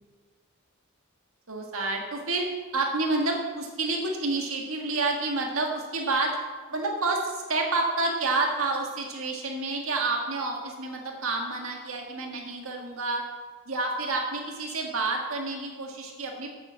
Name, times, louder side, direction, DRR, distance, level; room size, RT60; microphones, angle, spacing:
voice 1, 1.5-6.4 6.7-13.3 13.6-16.6, right 3 dB, 75° right, 1 dB, 1.8 m, -29 dB
8.9 x 8.0 x 7.6 m, 1.4 s
head